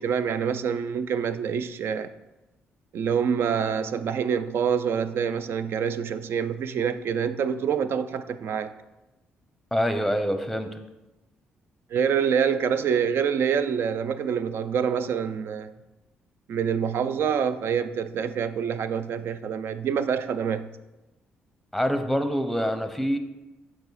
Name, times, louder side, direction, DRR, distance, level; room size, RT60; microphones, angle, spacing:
voice 1, 0.0-2.1 2.9-8.7 11.9-15.7 16.5-20.7, right 7 dB, 65° right, 12 dB, 0.4 m, -26 dB
voice 2, 9.7-10.8 21.7-23.2, equal, ahead, 8 dB, 0.8 m, -25 dB
6.8 x 4.9 x 4.1 m, 1.0 s
supercardioid pair, 65°, 4 cm